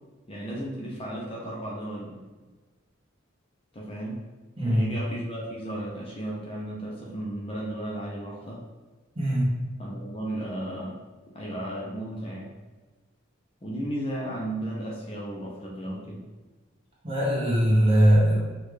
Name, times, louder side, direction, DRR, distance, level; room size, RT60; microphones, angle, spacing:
voice 1, 0.3-2.2 3.7-4.2 4.6-8.6 9.8-11.0 11.3-12.5 13.6-16.3, right 1 dB, 25° left, -4 dB, 0.6 m, -34 dB
voice 2, 9.1-9.5 17.0-18.4, equal, 25° right, -6 dB, 1.2 m, -20 dB
6.3 x 2.4 x 3.3 m, 1.3 s
head